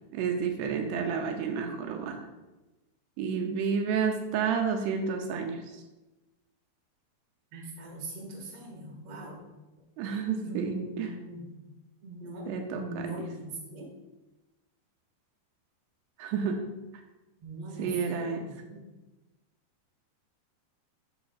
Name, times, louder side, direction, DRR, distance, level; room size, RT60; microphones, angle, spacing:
voice 1, 0.1-2.2 3.2-5.8 10.0-11.1 12.5-13.1 16.2-16.7 17.8-18.4, right 6 dB, 85° right, 3 dB, 2.7 m, -30 dB
voice 2, 7.5-9.4 10.4-11.5 12.0-13.9 17.4-18.8, right 1 dB, 45° right, -3 dB, 2.3 m, -41 dB
12.0 x 6.0 x 2.4 m, 1.1 s
omnidirectional pair, 4.7 m